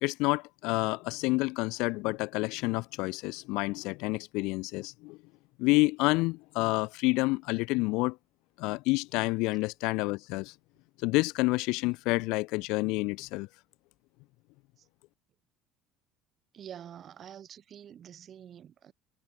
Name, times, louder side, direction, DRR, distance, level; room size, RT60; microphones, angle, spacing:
voice 1, 0.0-5.2 5.6-8.2 8.6-10.5 11.0-13.5, left 24 dB, 75° left, 0.7 m, -29 dB
voice 2, 16.5-18.9, right 9 dB, 35° right, 6.2 m, -47 dB
cardioid pair, 150°, 0 cm